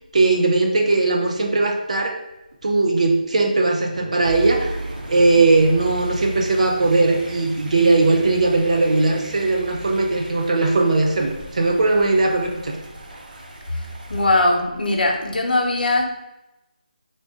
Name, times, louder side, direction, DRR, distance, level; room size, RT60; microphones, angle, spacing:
voice 1, 0.1-2.1 2.6-12.8, right 3 dB, 50° right, 2 dB, 0.5 m, -19 dB
sound 1, 4.2-14.3, right 2 dB, 85° right, 0.9 m, -35 dB
voice 2, 13.7-16.1, left 2 dB, 80° left, 2 dB, 0.8 m, -20 dB
3.6 x 2.5 x 3.6 m, 0.95 s
figure-of-eight pair, 170°, 5 cm